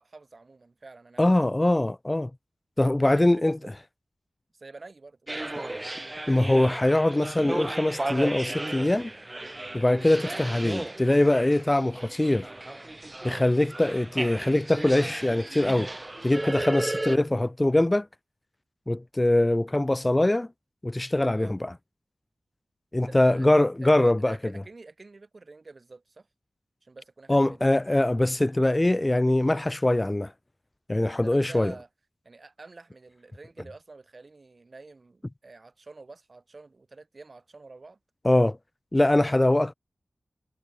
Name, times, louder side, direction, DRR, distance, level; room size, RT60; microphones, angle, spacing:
voice 1, 0.0-1.5 3.0-3.7 4.5-5.7 9.9-10.0 13.3-13.5 21.4-21.6 23.0-23.5 23.8-23.9 24.2-26.3 26.8-27.6 30.9-31.9 32.2-38.0, right 3 dB, 50° right, 4.5 m, -48 dB
voice 2, 1.2-2.3 2.8-3.6 6.3-9.1 9.7-12.5 13.2-15.9 16.2-18.1 18.9-20.5 20.8-21.7 22.9-24.4 27.3-30.3 30.9-31.7 38.2-38.6 38.9-39.7, left 1 dB, 20° left, 0.6 m, -23 dB
sound 1, 5.3-17.2, right 1 dB, 25° right, 1.1 m, -35 dB
wide cardioid pair, 80°, 0 cm